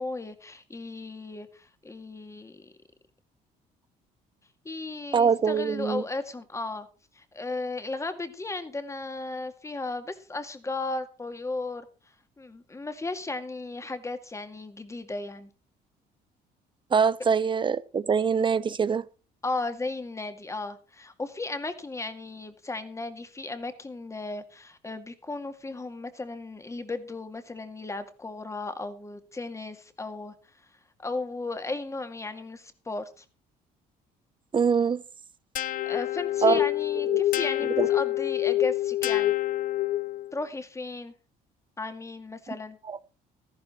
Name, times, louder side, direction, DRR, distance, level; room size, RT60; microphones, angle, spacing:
voice 1, 0.0-2.7 4.6-6.9 7.1-11.9 12.4-15.5 19.4-30.3 31.0-33.2 35.8-39.3 40.3-41.1 41.8-42.8, left 3 dB, 15° left, 2.1 m, -35 dB
voice 2, 5.1-6.0 16.9-19.0 34.5-35.0 36.4-36.6 37.1-37.2 37.8-37.9 42.9-43.0, right 6 dB, 30° right, 0.8 m, -24 dB
sound 1, 35.6-40.3, left 15 dB, 55° left, 0.6 m, -26 dB
14.0 x 11.5 x 4.4 m
cardioid pair, 110°, 17 cm